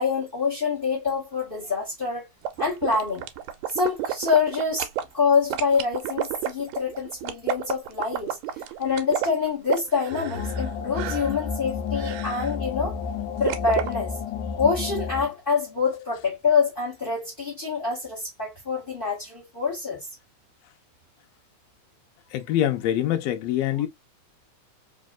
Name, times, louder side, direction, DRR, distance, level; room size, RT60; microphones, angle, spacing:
voice 1, 0.0-2.2 2.6-3.3 3.7-4.9 5.1-8.4 8.8-13.0 13.4-14.1 14.6-20.1, left 5 dB, 45° left, 0.7 m, -26 dB
sound 1, 2.4-5.0 5.5-10.7 10.9-11.4 12.0-12.5 13.5-13.9, right 11 dB, 80° right, 1.7 m, -30 dB
sound 2, 10.1-15.3, left 6 dB, 90° left, 2.1 m, -31 dB
voice 2, 22.3-23.9, left 12 dB, 75° left, 1.6 m, -24 dB
4.3 x 3.1 x 2.3 m
omnidirectional pair, 3.5 m